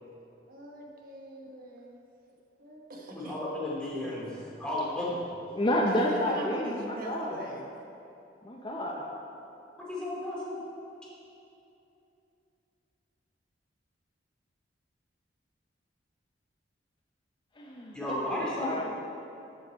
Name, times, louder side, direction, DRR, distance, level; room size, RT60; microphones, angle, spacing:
voice 1, 0.5-2.0 2.6-3.4 4.0-4.6 5.8-7.7, right 1 dB, 50° right, 0 dB, 1.0 m, -42 dB
voice 2, 3.1-4.3 4.6-5.1 9.8-10.6 17.9-18.8, left 1 dB, 5° left, -7 dB, 2.3 m, -33 dB
voice 3, 5.5-7.4 8.4-9.0 17.6-18.8, equal, 25° left, -1 dB, 0.6 m, -30 dB
13.5 x 5.5 x 4.5 m, 2.8 s
head